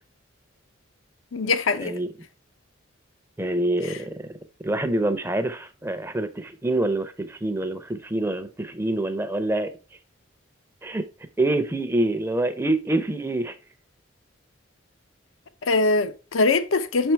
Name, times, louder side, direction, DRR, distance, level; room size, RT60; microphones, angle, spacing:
voice 1, 1.3-1.9 3.8-4.0 15.6-17.1, left 3 dB, 90° left, 0.7 m, -22 dB
voice 2, 3.4-4.4 4.6-9.7 10.8-11.1 11.4-13.6, right 2 dB, 10° right, 0.5 m, -26 dB
5.8 x 4.4 x 4.6 m
head